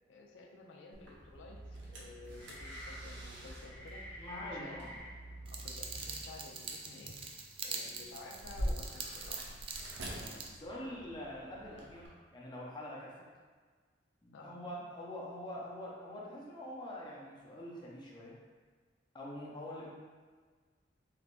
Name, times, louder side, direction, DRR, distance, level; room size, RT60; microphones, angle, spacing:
voice 1, 0.1-4.0 4.4-4.9 5.5-7.2 7.6-9.4 14.3-14.9, left 3 dB, 75° left, 0 dB, 0.4 m, -53 dB
sound 1, 0.9-12.1, equal, 80° right, 0.7 m, -46 dB
sound 2, 1.2-6.5, right 1 dB, 10° left, 1.1 m, -48 dB
voice 2, 4.2-5.0 10.2-13.3 14.2-18.4 19.1-19.9, left 1 dB, 25° left, -5 dB, 0.6 m, -45 dB
sound 3, 5.5-10.5, right 4 dB, 30° right, 0.3 m, -44 dB
3.4 x 3.2 x 2.5 m, 1.5 s
head